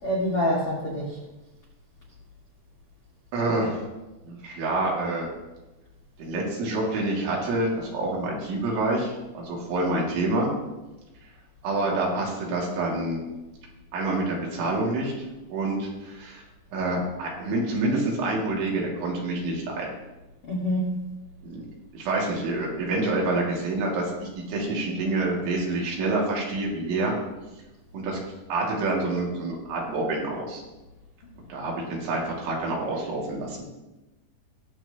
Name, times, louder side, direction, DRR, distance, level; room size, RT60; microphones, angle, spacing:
voice 1, 0.0-1.2 20.5-21.0, equal, 55° left, -5 dB, 1.5 m, -26 dB
voice 2, 3.3-3.9 4.3-5.3 6.2-10.5 11.6-13.2 13.9-16.4 16.7-19.9 21.4-21.7 21.9-27.2 27.9-28.2 28.5-30.6 31.5-33.7, right 2 dB, 75° right, -2 dB, 4.5 m, -27 dB
19.5 x 7.6 x 2.8 m, 1.1 s
omnidirectional pair, 5.5 m